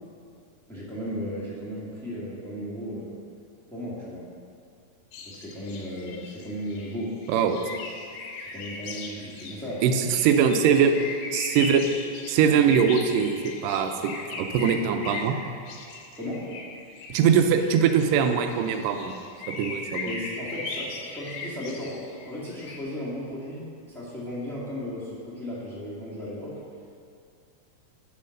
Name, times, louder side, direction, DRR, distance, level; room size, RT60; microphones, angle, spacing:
voice 1, 0.7-3.2 3.7-4.3 5.2-7.2 8.5-9.8 16.1-16.6 20.0-26.6, equal, ahead, -8 dB, 0.6 m, -35 dB
sound 1, 5.1-22.8, left 3 dB, 90° left, 2.6 m, -39 dB
voice 2, 7.3-7.6 9.8-10.9 11.3-11.8 12.3-15.4 17.1-19.1 19.5-20.1, right 7 dB, 80° right, 6 dB, 2.2 m, -22 dB
8.8 x 5.5 x 6.4 m, 2.4 s
omnidirectional pair, 4.0 m